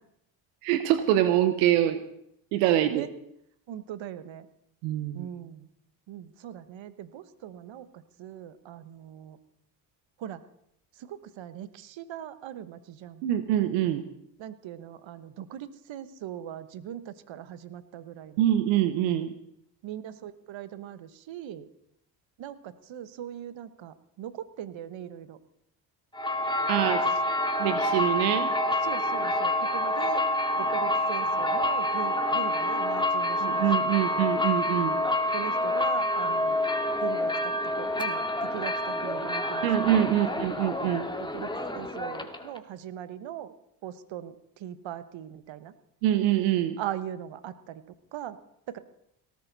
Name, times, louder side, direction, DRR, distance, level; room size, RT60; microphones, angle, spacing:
voice 1, 0.6-2.0 2.5-3.1 4.8-5.3 13.2-14.0 18.4-19.3 26.7-27.0 27.6-28.5 33.4-35.0 39.6-41.0 46.0-46.8, right 12 dB, 90° right, 10 dB, 1.0 m, -25 dB
voice 2, 3.7-4.5 5.1-5.7 6.1-9.4 10.2-10.4 10.9-13.2 14.4-18.4 19.8-21.7 22.4-25.4 26.8-26.9 28.8-30.2 30.6-33.6 34.0-34.3 35.3-36.6 37.0-40.4 41.2-43.5 43.8-45.7 46.8-47.8 48.1-48.4 48.7-48.8, right 11 dB, 65° right, 13 dB, 1.3 m, -40 dB
sound 1, 26.1-42.6, left 1 dB, 10° left, 2.0 m, -27 dB
18.0 x 14.0 x 4.1 m, 0.75 s
hypercardioid pair, 55°, 50 cm